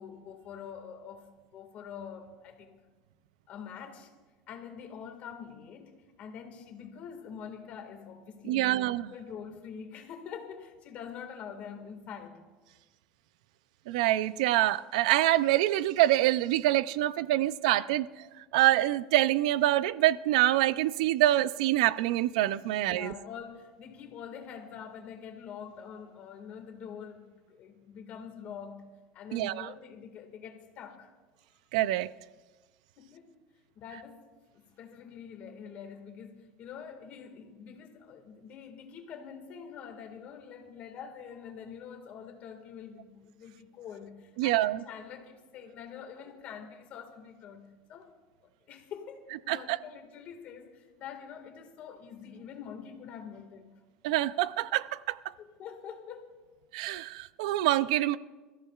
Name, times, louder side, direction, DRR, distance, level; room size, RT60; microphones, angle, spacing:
voice 1, 0.0-2.8 3.5-4.1 4.5-8.8 9.1-12.4 22.7-31.1 33.0-33.4 33.8-34.2 34.5-48.1 48.7-53.7 55.4-56.3, left 7 dB, 45° left, 1.9 m, -45 dB
voice 2, 8.5-9.1 13.9-18.3 18.5-23.1 29.3-29.7 31.7-32.1 44.4-44.8 49.5-49.8 54.0-55.2 56.7-58.2, right 15 dB, 85° right, 0.4 m, -26 dB
26.0 x 14.0 x 2.4 m
cardioid pair, 155°, 4 cm